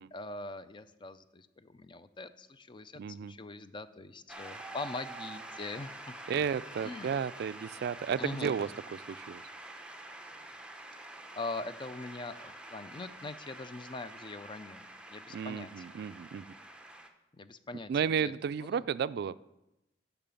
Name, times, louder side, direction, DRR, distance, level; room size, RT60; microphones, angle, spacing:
voice 1, 0.0-6.1 6.8-7.1 8.2-8.6 11.0-11.1 11.3-14.8 15.1-16.0 17.3-17.9 18.2-18.3 18.6-18.8, left 3 dB, 25° left, 13 dB, 0.4 m, -42 dB
voice 2, 3.0-3.3 6.3-9.4 15.3-16.5 17.9-19.4, right 7 dB, 60° right, 17 dB, 0.3 m, -33 dB
Shout / Cheering / Applause, 4.3-17.1, right 2 dB, 5° right, 0.7 m, -47 dB
8.9 x 5.8 x 6.9 m, 0.91 s
head